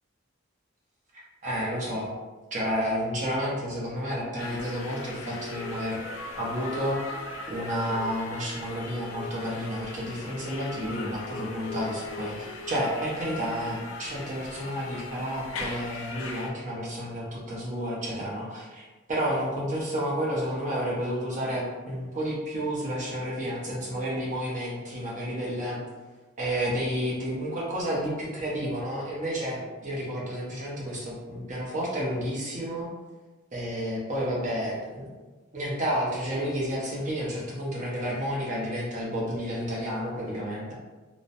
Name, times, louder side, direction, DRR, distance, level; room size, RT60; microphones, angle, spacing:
voice 1, 1.1-2.1 2.5-6.0 6.3-7.2 7.5-25.8 26.4-32.9 33.5-35.1 35.5-40.7, equal, 40° right, -5 dB, 0.7 m, -31 dB
sound 1, 4.4-16.5, left 3 dB, 85° left, 0.4 m, -39 dB
2.9 x 2.0 x 2.5 m, 1.3 s
head